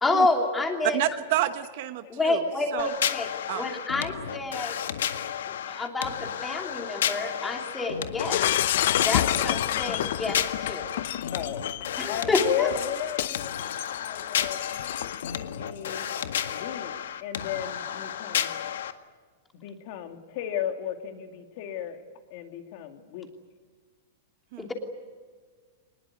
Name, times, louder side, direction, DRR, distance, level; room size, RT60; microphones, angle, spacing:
voice 1, 0.0-1.0 2.1-3.3 3.5-4.8 5.5-8.4 9.0-10.9 12.0-12.7 24.6-24.7, left 2 dB, 10° left, 3 dB, 2.9 m, -28 dB
voice 2, 0.9-2.4 2.7-2.9 3.5-3.6 24.5-24.7, right 14 dB, 45° right, 11 dB, 1.0 m, -29 dB
sound 1, 2.8-18.9, left 9 dB, 85° left, 1.7 m, -32 dB
Shatter, 8.2-15.6, left 12 dB, 60° left, 0.7 m, -29 dB
voice 3, 9.2-9.6 11.3-11.6 12.1-16.1 16.5-16.9 17.2-18.5 19.5-22.0 22.3-23.3, left 10 dB, 40° left, 6 dB, 2.5 m, -35 dB
24.0 x 21.0 x 9.6 m, 1.5 s
supercardioid pair, 175°, 0 cm